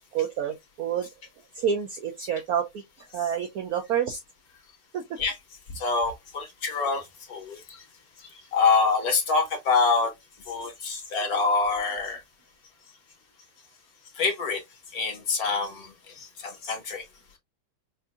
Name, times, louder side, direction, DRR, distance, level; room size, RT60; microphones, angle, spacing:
voice 1, 0.1-1.1 1.6-2.8 3.1-4.2 4.9-5.0, right 8 dB, 70° right, 0.9 m, -28 dB
voice 2, 5.8-7.0 7.3-7.6 8.5-10.1 10.5-12.2 14.2-14.6 14.9-15.9 16.4-17.0, left 4 dB, 55° left, 1.4 m, -25 dB
5.3 x 2.5 x 2.3 m
omnidirectional pair, 2.1 m